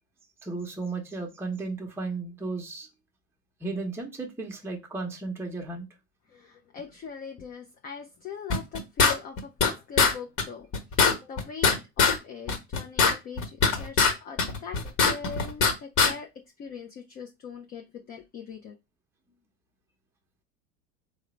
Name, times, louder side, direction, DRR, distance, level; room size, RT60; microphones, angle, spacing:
voice 1, 0.4-2.9 3.6-5.9, right 3 dB, 5° right, 0.7 m, -34 dB
voice 2, 6.3-10.7 11.1-16.3 16.6-18.8, left 6 dB, 20° left, 0.3 m, -41 dB
sound 1, 8.5-9.7 10.0-10.1 10.4-10.5 10.7-12.2 12.5-14.1 14.4-15.7 16.0-16.1, left 5 dB, 40° left, 1.1 m, -21 dB
3.7 x 2.0 x 4.3 m
hypercardioid pair, 85°, 46 cm